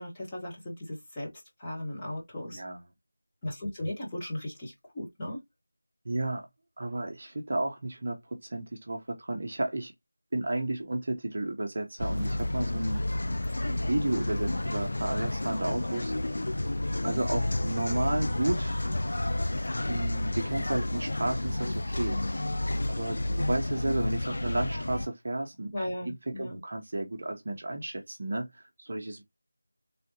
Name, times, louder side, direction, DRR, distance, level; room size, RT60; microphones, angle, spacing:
voice 1, 0.0-2.6 3.4-5.4 13.4-13.8 14.4-14.6 17.0-17.2 23.3-23.4 25.7-26.6, left 1 dB, 10° left, 1.2 m, -37 dB
voice 2, 2.5-2.8 6.0-6.5 6.8-9.9 10.3-13.1 13.9-16.1 17.0-18.8 19.9-22.2 22.9-25.7 26.0-29.2, right 2 dB, 35° right, 0.8 m, -32 dB
sound 1, 12.0-25.1, left 1 dB, 50° left, 0.3 m, -30 dB
4.1 x 3.5 x 2.8 m
figure-of-eight pair, 180°, 0 cm